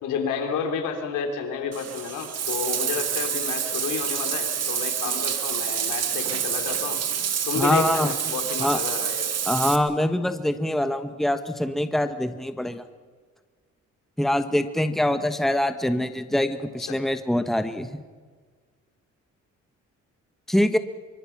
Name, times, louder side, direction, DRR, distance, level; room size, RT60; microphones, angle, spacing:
voice 1, 0.0-7.0 7.5-9.3 16.8-17.0, left 6 dB, 90° left, 4 dB, 3.6 m, -30 dB
Bathtub (filling or washing), 1.7-9.8, right 8 dB, 55° right, 2.1 m, -28 dB
voice 2, 7.6-8.1 8.6-8.8 9.5-12.8 14.2-18.0 20.5-20.8, left 1 dB, ahead, 9 dB, 1.3 m, -24 dB
24.5 x 24.0 x 6.0 m, 1.5 s
cardioid pair, 90°, 30 cm